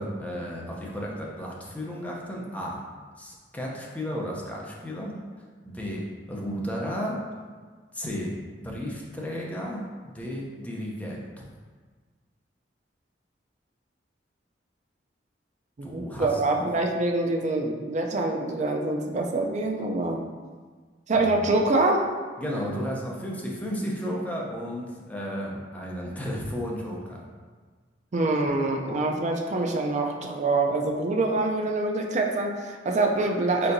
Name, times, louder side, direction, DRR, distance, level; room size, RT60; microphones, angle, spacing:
voice 1, 0.0-2.9 3.2-5.2 5.6-7.2 7.9-11.4 15.8-16.7 21.1-21.5 22.4-27.2, equal, 10° left, -3 dB, 0.6 m, -33 dB
voice 2, 15.8-20.2 21.1-22.0 28.1-33.7, right 2 dB, 40° right, 2 dB, 0.4 m, -25 dB
4.4 x 3.7 x 2.6 m, 1.5 s
head